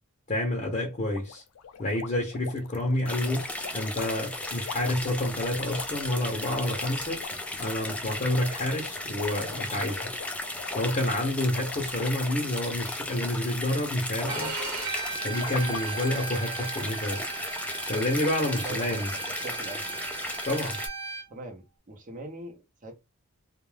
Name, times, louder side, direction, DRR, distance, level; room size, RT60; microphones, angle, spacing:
voice 1, 0.3-1.4 1.8-3.5 3.7-7.2 7.6-10.1 10.8-14.5 15.2-17.2 17.9-19.1 20.4-20.8, left 1 dB, 35° left, 0.6 m, -29 dB
sound 1, 1.1-13.9 14.2-14.6 15.1-17.0 17.3-17.4 17.8-17.9 18.4-18.5 18.8-18.9, left 7 dB, 85° left, 0.4 m, -44 dB
sound 2, 3.1-20.9, left 1 dB, 5° left, 0.3 m, -35 dB
Bowed string instrument, 14.3-21.2, right 5 dB, 75° right, 1.0 m, -36 dB
voice 2, 18.4-20.0 21.3-22.9, right 2 dB, 35° right, 0.7 m, -42 dB
2.3 x 2.2 x 3.2 m
head